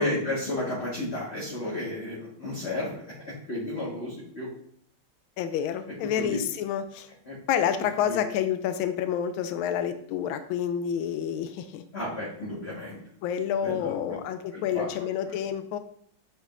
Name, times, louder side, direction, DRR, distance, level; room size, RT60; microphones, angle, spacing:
voice 1, 0.0-4.5 6.2-6.4 7.3-7.4 8.1-8.2 11.9-13.0 13.6-14.2 14.5-14.9, left 1 dB, 35° left, -6 dB, 1.7 m, -32 dB
voice 2, 5.4-7.1 7.5-11.8 13.2-15.8, left 9 dB, 80° left, 9 dB, 1.4 m, -29 dB
8.2 x 5.3 x 2.5 m, 0.64 s
omnidirectional pair, 2.3 m